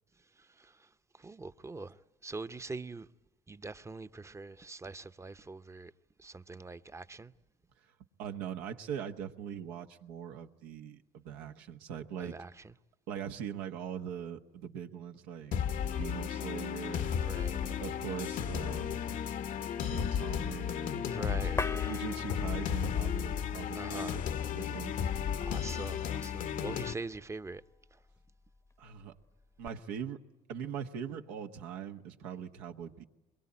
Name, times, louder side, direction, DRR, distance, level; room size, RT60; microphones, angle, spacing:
voice 1, 0.3-3.1 3.5-5.9 6.2-7.3 12.2-12.7 17.2-17.9 21.0-22.0 23.7-24.8 25.4-27.6 27.9-28.0, right 3 dB, 20° right, 0.8 m, -44 dB
voice 2, 8.2-12.3 13.1-15.5 15.8-17.1 17.6-19.3 19.8-21.1 21.9-24.2 24.5-25.0 28.8-29.1 29.6-30.2 30.5-33.0, right 8 dB, 85° right, 1.1 m, -41 dB
sound 1, 15.5-26.9, left 8 dB, 60° left, 0.9 m, -34 dB
sound 2, 21.6-29.7, left 3 dB, 20° left, 0.8 m, -47 dB
23.0 x 22.5 x 9.7 m
supercardioid pair, 70°, 15 cm